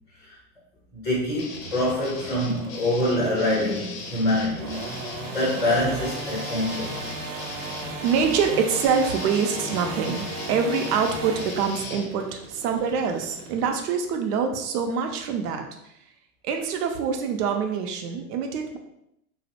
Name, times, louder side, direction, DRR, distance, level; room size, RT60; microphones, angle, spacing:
voice 1, 0.9-4.8 5.3-7.1, left 1 dB, 5° left, -5 dB, 0.6 m, -25 dB
sound 1, 1.4-12.1, left 3 dB, 45° left, 0.6 m, -39 dB
sound 2, 1.5-13.8, right 2 dB, 35° right, 0.5 m, -37 dB
voice 2, 8.0-15.6 16.4-18.8, right 6 dB, 80° right, 4 dB, 0.5 m, -25 dB
2.4 x 2.0 x 2.8 m, 0.80 s
hypercardioid pair, 120°, 47 cm